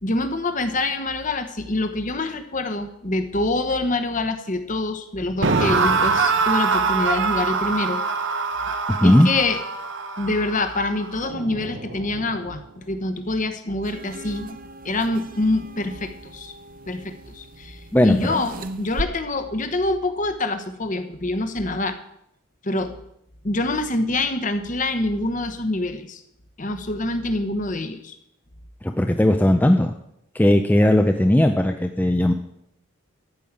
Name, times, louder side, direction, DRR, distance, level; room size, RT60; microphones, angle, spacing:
voice 1, 0.0-8.0 9.0-9.6 10.2-16.5 16.9-22.0 22.6-23.0 23.4-26.2 26.6-28.2, left 2 dB, 35° left, 8 dB, 1.0 m, -26 dB
sound 1, 5.4-12.5, right 4 dB, 55° right, 1.0 m, -24 dB
sound 2, 13.8-19.0, right 2 dB, 40° right, 0.6 m, -38 dB
voice 2, 17.9-18.4 28.8-29.9 30.3-32.3, left 1 dB, 10° left, 5 dB, 0.4 m, -17 dB
13.5 x 5.5 x 8.6 m, 0.78 s
head